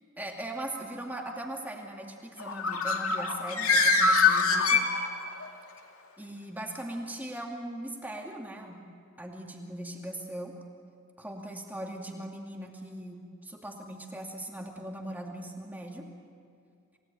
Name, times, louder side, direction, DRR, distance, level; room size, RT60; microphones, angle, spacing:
voice 1, 0.2-4.8 6.2-8.8 9.2-10.5 11.2-16.1, right 1 dB, 10° right, 1 dB, 2.4 m, -39 dB
Bird, 2.4-5.5, left 4 dB, 85° left, 2.3 m, -24 dB
28.5 x 18.0 x 9.2 m, 2.4 s
head